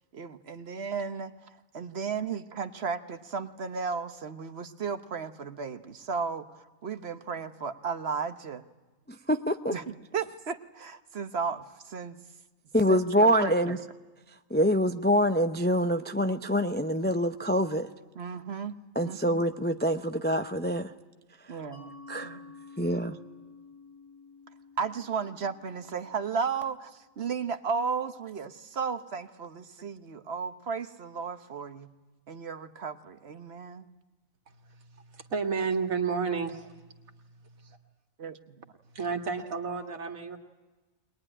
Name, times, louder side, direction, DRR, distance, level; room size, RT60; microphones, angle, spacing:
voice 1, 0.1-1.3 1.7-8.6 9.7-12.2 12.9-13.8 18.1-18.7 19.0-19.2 21.5-21.9 22.2-22.4 24.8-31.9 32.3-33.9 38.2-38.3, right 5 dB, 50° right, 9 dB, 1.2 m, -34 dB
voice 2, 9.1-9.7 12.7-13.8 14.5-17.9 19.0-20.9 22.1-22.4 22.8-23.2, equal, 15° left, 8 dB, 0.4 m, -25 dB
Mallet percussion, 21.7-27.1, left 4 dB, 55° left, 5.1 m, -51 dB
voice 3, 35.1-36.8 38.9-40.4, right 5 dB, 80° right, 4 dB, 2.1 m, -31 dB
22.0 x 21.0 x 9.9 m, 1.2 s
omnidirectional pair, 1.4 m